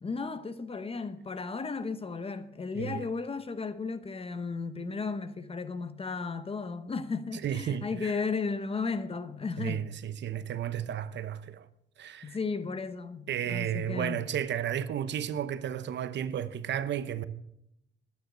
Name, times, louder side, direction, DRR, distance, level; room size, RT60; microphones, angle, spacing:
voice 1, 0.0-9.8 12.2-14.2, left 4 dB, 30° left, 1.0 m, -34 dB
voice 2, 2.7-3.0 7.4-8.1 9.6-11.7 12.0-12.4 13.3-17.2, right 9 dB, 65° right, 0.8 m, -33 dB
11.5 x 9.4 x 6.3 m
cardioid pair, 90°, 20 cm